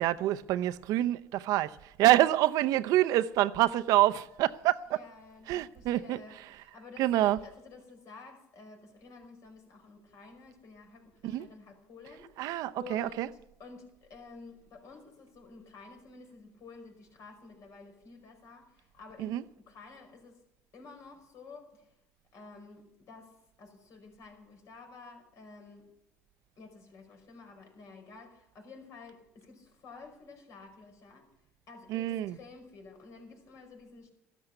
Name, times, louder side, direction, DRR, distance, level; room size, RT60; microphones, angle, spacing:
voice 1, 0.0-5.0 5.5-6.2 7.0-7.4 11.2-11.5 12.4-13.3 19.2-19.4 31.9-32.4, right 14 dB, 70° right, 0.7 m, -27 dB
voice 2, 4.9-20.4 20.7-21.9 22.3-25.9 26.6-31.3 31.7-34.1, left 4 dB, 55° left, 5.3 m, -51 dB
14.0 x 13.0 x 6.7 m
cardioid pair, 105°, 6 cm